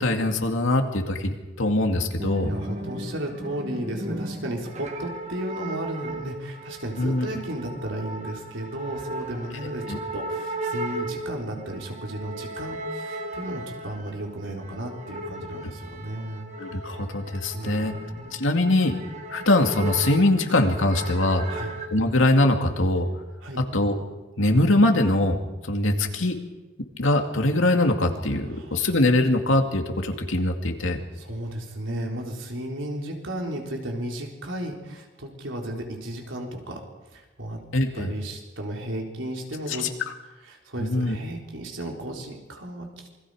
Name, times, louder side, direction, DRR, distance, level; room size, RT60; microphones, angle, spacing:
voice 1, 0.0-2.5 7.0-7.3 9.9-10.0 16.6-17.9 18.3-18.9 19.3-21.5 21.9-23.1 23.7-24.0 24.4-25.4 25.7-26.4 27.0-31.0 37.7-38.1 39.8-39.9 40.8-41.2, left 1 dB, 85° left, 4 dB, 2.4 m, -22 dB
sound 1, 2.2-21.9, right 2 dB, 35° right, 1.7 m, -36 dB
voice 2, 2.5-16.4 17.5-18.5 21.5-21.7 23.4-23.6 28.5-28.9 31.1-36.8 37.1-37.6 37.9-39.9 40.4-43.1, right 1 dB, 75° right, 0 dB, 4.1 m, -34 dB
27.5 x 22.5 x 5.0 m, 1.2 s
head